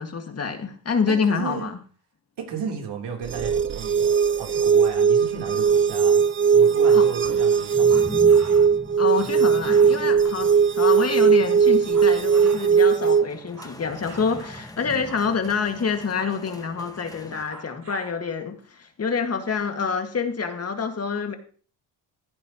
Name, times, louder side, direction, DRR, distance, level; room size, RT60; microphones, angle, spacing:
voice 1, 0.0-1.8 6.9-7.1 9.0-21.4, left 5 dB, 35° left, 2.1 m, -27 dB
voice 2, 1.1-1.7 2.4-4.1 4.4-6.2 6.5-8.2, right 6 dB, 70° right, 3.6 m, -34 dB
sound 1, 3.2-13.2, right 6 dB, 30° right, 0.5 m, -19 dB
sound 2, 5.1-17.4, left 1 dB, 10° left, 1.6 m, -42 dB
sound 3, 6.6-10.2 10.7-12.7 13.1-14.7 15.0-15.5 15.9-16.8 17.2-18.2, right 3 dB, 45° right, 7.7 m, -45 dB
15.5 x 10.5 x 3.1 m
cardioid pair, 95°, 43 cm